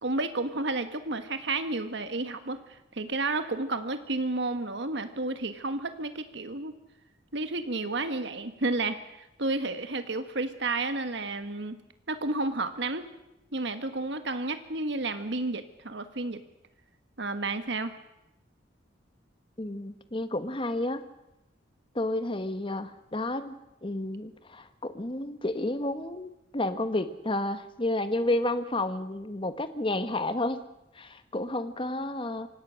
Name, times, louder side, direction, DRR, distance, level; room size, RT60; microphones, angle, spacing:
voice 1, 0.0-6.7 7.3-11.7 12.1-13.1 13.5-16.4 17.2-17.9, right 2 dB, 65° right, 9 dB, 1.5 m, -31 dB
voice 2, 19.6-21.0 21.9-23.5 23.8-30.6 30.9-32.5, left 1 dB, 30° left, 10 dB, 1.3 m, -31 dB
25.5 x 18.0 x 6.4 m, 0.90 s
head